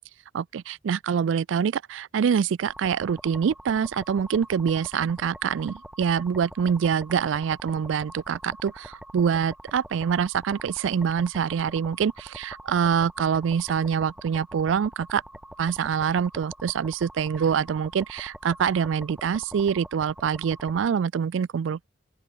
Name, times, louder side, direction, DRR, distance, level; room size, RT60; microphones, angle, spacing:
voice 1, 0.3-15.2 15.6-21.9, right 7 dB, 85° right, 0.4 m, -25 dB
sound 1, 2.7-20.9, right 1 dB, 5° right, 1.2 m, -45 dB
open air
head